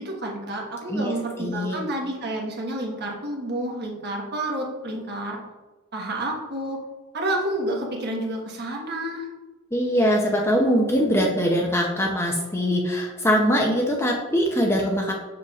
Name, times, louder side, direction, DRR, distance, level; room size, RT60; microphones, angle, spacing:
voice 1, 0.0-5.4 5.9-6.8 7.1-9.3, right 1 dB, 50° right, -1 dB, 1.2 m, -29 dB
voice 2, 1.4-1.8 9.7-15.1, equal, 10° left, 0 dB, 0.6 m, -22 dB
6.7 x 6.6 x 2.4 m, 1.2 s
head